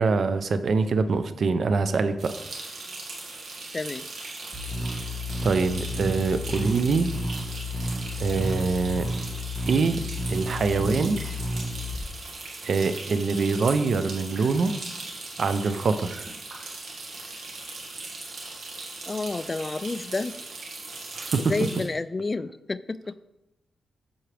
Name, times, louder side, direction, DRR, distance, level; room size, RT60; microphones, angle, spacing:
voice 1, 0.0-2.3 5.4-7.1 8.2-9.1 9.6-10.0 10.3-11.2 12.6-14.7 15.4-16.3 21.2-21.5, right 4 dB, 65° right, 11 dB, 0.6 m, -24 dB
sound 1, 2.2-21.8, right 3 dB, 80° right, 1.9 m, -39 dB
voice 2, 3.7-4.1 19.1-20.4 21.4-23.1, left 3 dB, 30° left, 14 dB, 0.3 m, -30 dB
sound 2, 4.5-12.1, left 1 dB, 25° right, 1.7 m, -31 dB
7.8 x 7.1 x 3.4 m, 0.90 s
cardioid pair, 95°, 0 cm